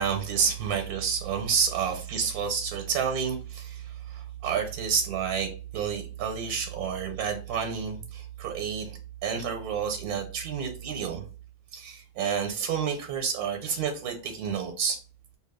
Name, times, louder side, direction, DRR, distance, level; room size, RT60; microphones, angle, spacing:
voice 1, 0.0-11.2 11.7-15.0, right 7 dB, 90° right, 1.1 m, -30 dB
2.6 x 2.3 x 3.4 m
omnidirectional pair, 1.6 m